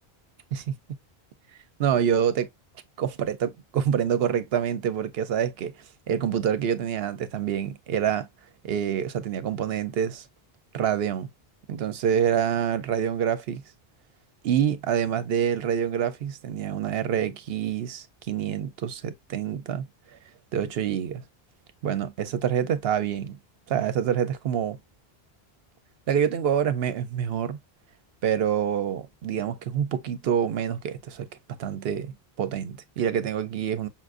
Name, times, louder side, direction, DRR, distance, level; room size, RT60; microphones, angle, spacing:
voice 1, 1.8-2.5 3.0-5.7 6.1-8.3 8.6-10.2 10.7-11.3 11.7-13.6 14.4-19.9 20.5-21.2 21.8-23.4 23.7-24.8 26.1-27.6 28.2-31.3 31.6-33.9, right 9 dB, 75° right, 0.8 m, -26 dB
5.6 x 2.5 x 2.4 m
omnidirectional pair, 1.0 m